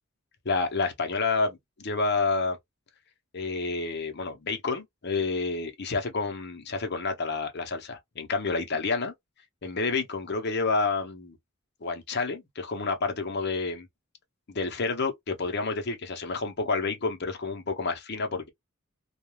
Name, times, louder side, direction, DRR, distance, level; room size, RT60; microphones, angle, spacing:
voice 1, 0.4-2.6 3.3-9.1 9.6-11.4 11.8-13.9 14.5-18.5, left 4 dB, 50° left, 0.7 m, -29 dB
2.3 x 2.3 x 3.1 m
head